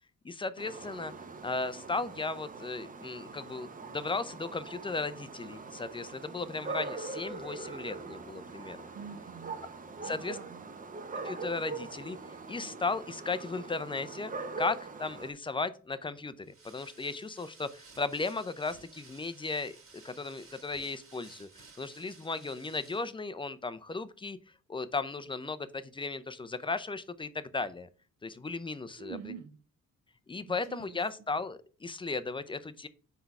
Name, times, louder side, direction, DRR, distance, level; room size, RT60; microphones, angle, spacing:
voice 1, 0.2-1.1 1.4-8.8 10.0-10.4 11.1-12.2 12.5-19.7 20.0-21.5 21.8-24.4 24.7-27.9 28.2-29.2 30.3-32.9, left 3 dB, 15° left, 13 dB, 0.5 m, -36 dB
sound 1, 0.6-15.3, right 3 dB, 30° right, 0.7 m, -42 dB
voice 2, 8.9-9.6 10.0-10.7 29.0-29.6 30.5-31.0, right 7 dB, 60° right, 7 dB, 0.7 m, -46 dB
sound 2, 16.4-23.1, right 4 dB, 45° right, 1.9 m, -56 dB
4.5 x 4.0 x 5.3 m, 0.38 s
cardioid pair, 90°, 30 cm